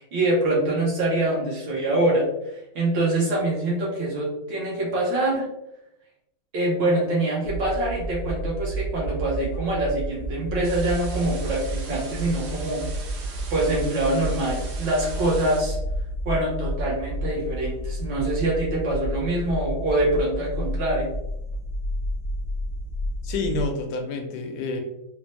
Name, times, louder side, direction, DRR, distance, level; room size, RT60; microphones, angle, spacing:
voice 1, 0.0-2.3 2.7-5.5 6.5-12.8 13.5-15.8 16.2-21.1, right 1 dB, 65° right, -4 dB, 1.4 m, -24 dB
sound 1, 7.4-23.7, right 1 dB, 35° left, 0.6 m, -31 dB
sound 2, 10.6-15.6, right 4 dB, 90° right, 1.7 m, -41 dB
voice 2, 23.2-24.8, left 3 dB, 75° left, 4 dB, 1.0 m, -28 dB
4.2 x 2.0 x 3.0 m, 0.87 s
omnidirectional pair, 2.3 m